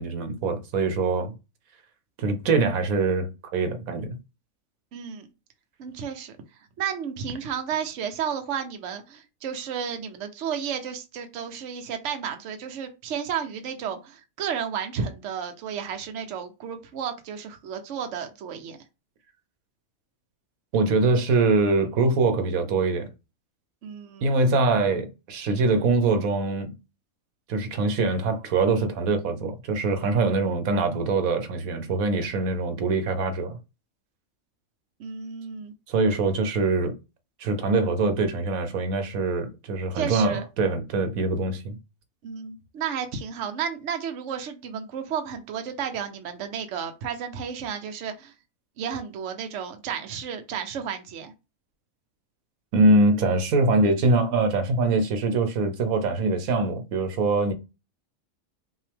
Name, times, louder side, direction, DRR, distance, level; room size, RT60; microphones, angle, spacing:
voice 1, 0.0-1.3 2.2-4.2 20.7-23.1 24.2-26.7 27.5-33.6 35.9-36.9 37.4-41.8 52.7-57.5, right 3 dB, 80° right, 1.3 m, -23 dB
voice 2, 4.9-5.3 5.8-6.4 6.8-18.8 23.8-24.3 35.0-35.7 39.9-40.4 42.2-48.3 48.8-51.3, right 7 dB, 65° right, 1.0 m, -32 dB
5.6 x 2.7 x 3.4 m
omnidirectional pair, 1.4 m